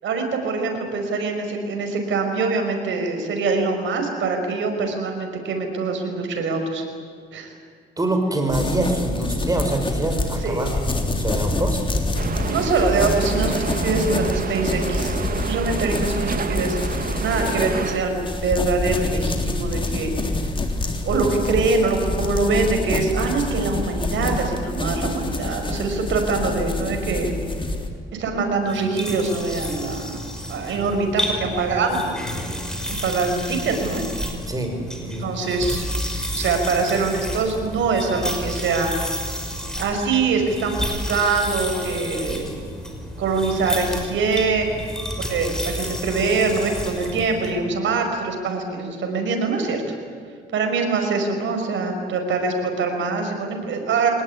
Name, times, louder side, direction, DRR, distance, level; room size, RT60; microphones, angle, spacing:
voice 1, 0.0-6.8 7.3-7.5 10.4-10.9 12.3-15.1 15.4-16.8 17.2-20.1 21.0-27.3 28.1-30.1 30.5-32.3 32.9-34.0 35.0-35.9 36.3-38.9 39.8-42.6 43.2-44.9 45.2-50.0 50.5-54.2, right 4 dB, 70° right, 4 dB, 5.6 m, -24 dB
voice 2, 8.0-11.8 21.0-21.2 34.5-34.7 35.0-35.4, right 1 dB, 20° right, 4 dB, 5.7 m, -25 dB
sound 1, 8.5-27.9, left 2 dB, 25° left, 3.6 m, -26 dB
sound 2, 12.2-18.0, right 6 dB, 45° right, 1.6 m, -29 dB
sound 3, 28.7-47.5, equal, 5° left, 5.5 m, -31 dB
24.0 x 19.5 x 9.6 m, 2.1 s
cardioid pair, 90°, 20 cm